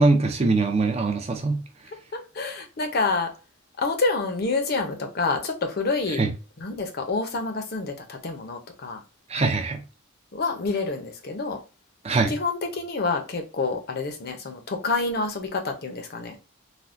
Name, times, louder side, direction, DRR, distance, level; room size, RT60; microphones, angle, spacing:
voice 1, 0.0-1.6 6.2-6.3 9.3-9.8 12.0-12.3, right 3 dB, 30° right, 0.4 m, -22 dB
voice 2, 2.1-3.3 3.8-6.2 6.6-9.0 10.3-11.6 12.3-16.4, left 3 dB, 45° left, 0.5 m, -28 dB
3.4 x 2.2 x 2.5 m
head